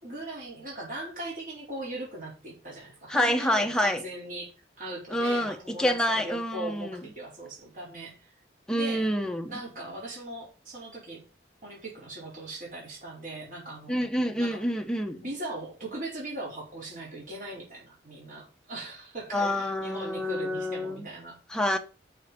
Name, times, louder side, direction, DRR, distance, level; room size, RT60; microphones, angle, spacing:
voice 1, 0.0-4.5 4.8-8.3 8.7-9.1 9.5-11.2 11.6-14.6 15.2-21.4, right 1 dB, 45° right, 4.7 m, -39 dB
voice 2, 3.1-4.0 5.1-7.0 8.7-9.5 13.9-15.2 19.3-21.1 21.5-21.8, equal, 5° left, 1.0 m, -27 dB
6.7 x 6.5 x 7.2 m
head